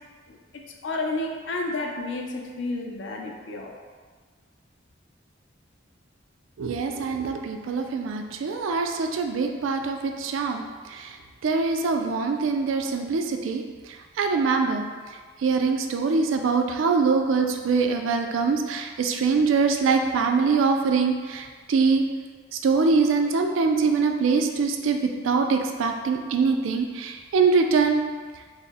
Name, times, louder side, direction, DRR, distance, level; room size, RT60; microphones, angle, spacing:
voice 1, 0.8-3.7, left 2 dB, 65° left, 1 dB, 0.5 m, -31 dB
voice 2, 6.6-10.6 10.9-11.2 11.4-13.6 14.2-14.8 15.4-22.1 22.5-28.0, right 4 dB, 80° right, 5 dB, 0.3 m, -23 dB
4.1 x 2.1 x 3.4 m, 1.5 s
head